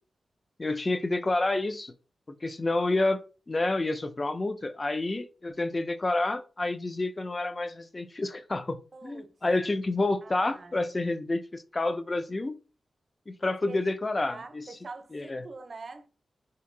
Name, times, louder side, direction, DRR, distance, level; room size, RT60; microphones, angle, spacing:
voice 1, 0.6-1.9 2.4-12.6 13.3-14.6 15.1-15.5, left 2 dB, 35° left, 0.4 m, -29 dB
voice 2, 8.9-9.4 10.2-10.9 13.6-13.8 14.3-16.1, right 3 dB, 55° right, 0.6 m, -44 dB
2.7 x 2.6 x 3.7 m
cardioid pair, 55°, 0 cm